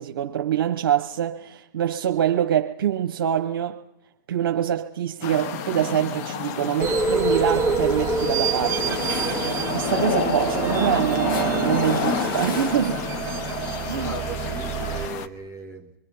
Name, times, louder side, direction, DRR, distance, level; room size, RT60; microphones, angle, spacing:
voice 1, 0.0-3.8 4.3-13.0 13.9-14.1, right 10 dB, 75° right, 0.9 m, -25 dB
sound 1, 5.2-15.3, left 9 dB, 45° left, 1.1 m, -30 dB
sound 2, 6.8-15.1, right 5 dB, 25° right, 1.1 m, -26 dB
sound 3, 8.6-13.3, left 4 dB, 70° left, 2.8 m, -38 dB
voice 2, 13.9-15.9, right 1 dB, 20° left, 2.1 m, -37 dB
27.0 x 23.0 x 5.5 m
hypercardioid pair, 135°, 12 cm